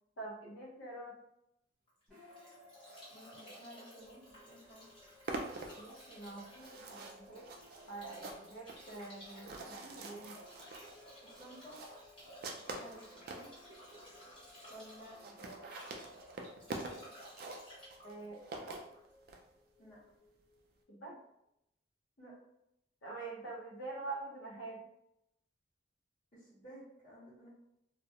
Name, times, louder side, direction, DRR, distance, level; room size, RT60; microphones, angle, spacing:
voice 1, 0.2-1.1 5.8-7.5 7.9-10.4 18.0-18.8 20.9-21.1 23.0-24.8, right 3 dB, 80° left, -3 dB, 0.7 m, -46 dB
Bathtub (filling or washing) / Drip / Trickle dribble, 1.9-19.1, equal, 25° left, 1.1 m, -56 dB
sound 1, 2.1-21.2, left 2 dB, 5° left, 0.8 m, -62 dB
voice 2, 3.1-4.9 11.2-11.8 12.6-13.5 14.7-15.7 19.8-20.0 22.2-22.3 26.3-27.5, equal, 40° left, -11 dB, 1.0 m, -54 dB
sound 2, 4.3-4.4 4.6-13.5 14.1-14.2 14.4-14.5 14.7-14.8 15.0-19.4, right 3 dB, 50° right, 0.3 m, -46 dB
2.4 x 2.0 x 2.8 m, 0.82 s
head